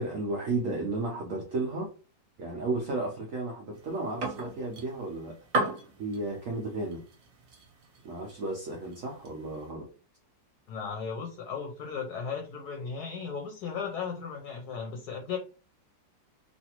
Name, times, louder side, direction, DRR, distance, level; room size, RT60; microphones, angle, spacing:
voice 1, 0.0-1.9 2.4-5.4 6.0-7.0 8.0-9.9, right 2 dB, 90° right, 0.7 m, -33 dB
sound 1, 3.7-9.7, right 2 dB, 55° right, 1.0 m, -37 dB
voice 2, 10.7-15.4, left 6 dB, 70° left, 1.0 m, -36 dB
3.1 x 2.5 x 2.9 m
omnidirectional pair, 2.0 m